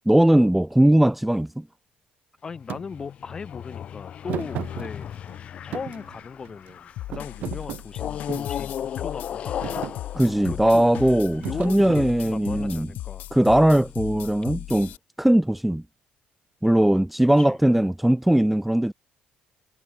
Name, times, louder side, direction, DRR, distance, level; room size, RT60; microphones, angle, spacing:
voice 1, 0.1-1.6 10.1-12.9 13.3-14.9 15.2-15.8 16.6-18.9, right 1 dB, 5° right, 0.5 m, -19 dB
voice 2, 2.4-5.1 5.6-9.8 10.3-10.9 11.4-13.3 17.4-17.6, left 5 dB, 25° left, 1.4 m, -38 dB
sound 1, 2.5-7.1 7.9-11.5, left 9 dB, 40° left, 2.3 m, -36 dB
Thump thud, 2.7-2.8 4.3-5.4 5.7-6.7 7.1-8.6 9.1-9.4 9.6-10.0 11.4-12.5, right 13 dB, 60° right, 1.2 m, -35 dB
sound 2, 7.0-15.0, left 15 dB, 70° left, 2.4 m, -37 dB
cardioid pair, 165°, 3 cm